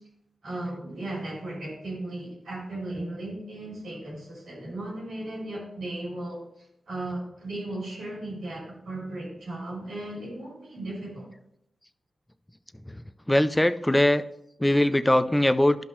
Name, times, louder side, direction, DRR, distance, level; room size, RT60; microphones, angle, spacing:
voice 1, 0.4-11.3, right 1 dB, 85° right, -5 dB, 3.6 m, -36 dB
voice 2, 13.3-14.2 14.6-15.8, left 1 dB, 10° left, 13 dB, 0.4 m, -21 dB
11.5 x 5.4 x 3.2 m, 0.77 s
cardioid pair, 50°, 0 cm